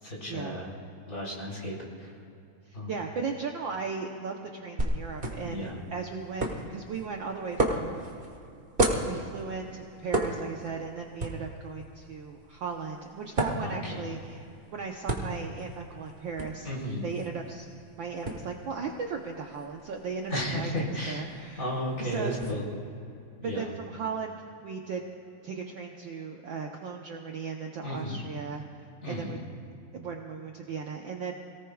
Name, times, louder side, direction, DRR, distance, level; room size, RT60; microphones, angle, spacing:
voice 1, 0.0-0.7 1.1-2.1 2.7-2.9 5.4-5.8 13.6-14.0 16.6-17.1 20.3-22.6 23.4-23.7 27.8-28.2 29.0-29.4, equal, 25° left, -4 dB, 3.8 m, -34 dB
voice 2, 2.7-8.0 9.1-14.5 14.7-16.7 17.0-17.7 18.0-20.7 21.1-21.7 22.0-22.4 23.4-24.3 24.6-25.0 25.4-28.6 29.0-29.4 29.9-31.3, right 5 dB, 75° right, 1 dB, 1.1 m, -36 dB
sound 1, 4.8-22.5, right 2 dB, 30° right, 1.0 m, -35 dB
28.5 x 18.5 x 2.4 m, 2.6 s
omnidirectional pair, 3.3 m